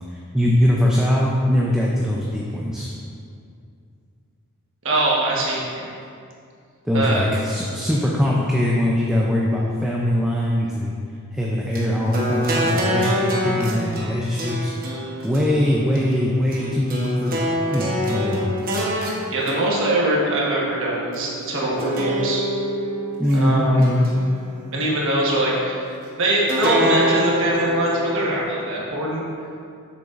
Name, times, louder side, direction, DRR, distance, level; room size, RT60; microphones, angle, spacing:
voice 1, 0.1-2.9 6.8-10.9 11.3-14.7 15.2-17.4 17.7-18.5 23.2-24.1, left 1 dB, 5° right, -4 dB, 0.4 m, -21 dB
voice 2, 4.8-5.9 6.9-7.3 19.3-22.4 23.3-23.8 24.7-29.2, right 1 dB, 60° right, -4 dB, 1.3 m, -22 dB
sound 1, 11.8-21.2 21.8-23.4 23.8-24.9 26.5-28.4, equal, 40° right, 1.0 m, -26 dB
7.0 x 6.9 x 2.5 m, 2.4 s
head